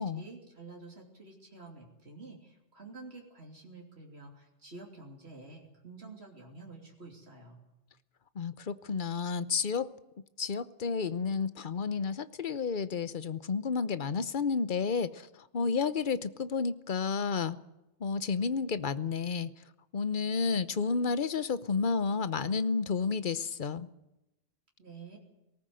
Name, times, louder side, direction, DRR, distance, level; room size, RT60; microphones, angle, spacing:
voice 1, 0.0-7.6 24.8-25.2, right 3 dB, 90° right, 0 dB, 3.4 m, -49 dB
voice 2, 8.3-9.9 10.4-17.6 18.0-19.5 19.9-23.9, left 5 dB, 55° left, 14 dB, 1.0 m, -31 dB
19.0 x 18.5 x 7.8 m, 0.94 s
omnidirectional pair, 1.1 m